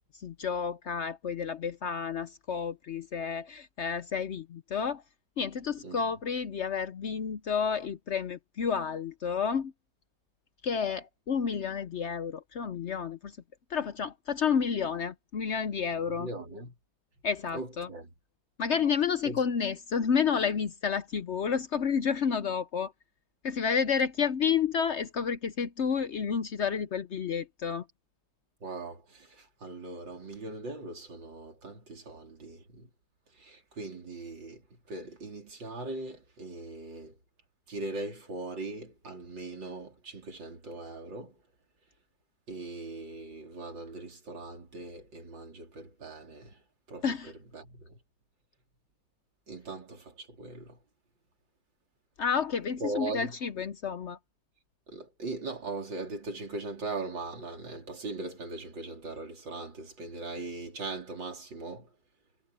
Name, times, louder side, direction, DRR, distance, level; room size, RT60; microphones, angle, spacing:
voice 1, 0.2-5.0 5.4-9.7 10.6-13.3 13.7-16.3 17.2-17.9 18.6-22.9 23.4-27.8 47.0-47.3 52.2-54.2, left 6 dB, 60° left, 0.7 m, -30 dB
voice 2, 5.8-6.2 16.0-16.7 17.5-18.1 19.2-19.4 28.6-32.9 33.4-37.2 37.7-41.4 42.5-46.6 46.9-48.0 49.5-50.8 52.8-53.4 54.9-61.9, right 2 dB, 80° right, 4.3 m, -40 dB
omnidirectional pair, 2.0 m